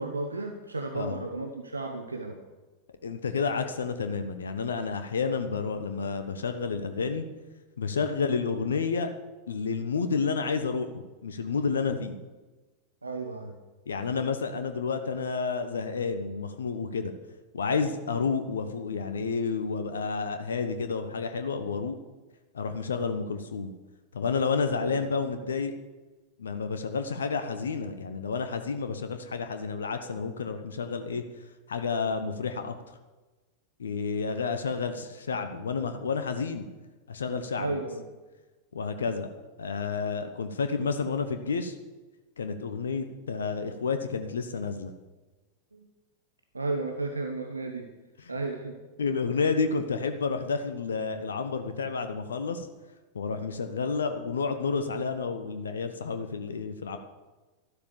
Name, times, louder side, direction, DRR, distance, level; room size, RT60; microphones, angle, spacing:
voice 1, 0.0-2.4 8.0-8.2 13.0-13.6 18.1-18.2 24.8-25.0 37.6-38.0 45.7-45.9 46.5-47.9 48.3-48.7, right 3 dB, 80° right, 4 dB, 1.3 m, -33 dB
voice 2, 3.0-7.2 7.8-9.1 9.5-12.2 13.9-17.1 17.5-22.0 22.5-23.7 24.1-25.7 26.4-31.2 31.7-32.9 33.8-36.7 37.1-37.7 38.7-39.3 39.6-41.8 42.4-44.9 48.2-48.3 49.0-52.7 53.1-57.0, left 5 dB, 70° left, 8 dB, 1.0 m, -30 dB
13.0 x 11.5 x 7.0 m, 1.2 s
figure-of-eight pair, 90°, 0 cm